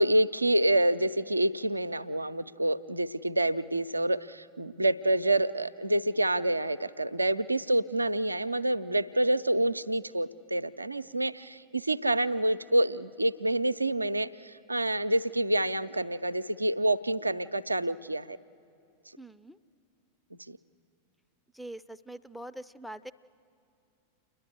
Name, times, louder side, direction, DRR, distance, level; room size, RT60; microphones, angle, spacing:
voice 1, 0.0-18.4 20.5-20.6, right 1 dB, 85° right, 13 dB, 0.4 m, -27 dB
voice 2, 19.2-19.6 21.5-23.1, right 1 dB, ahead, 12 dB, 0.4 m, -43 dB
29.0 x 11.0 x 8.2 m, 2.7 s
figure-of-eight pair, 90°, 0 cm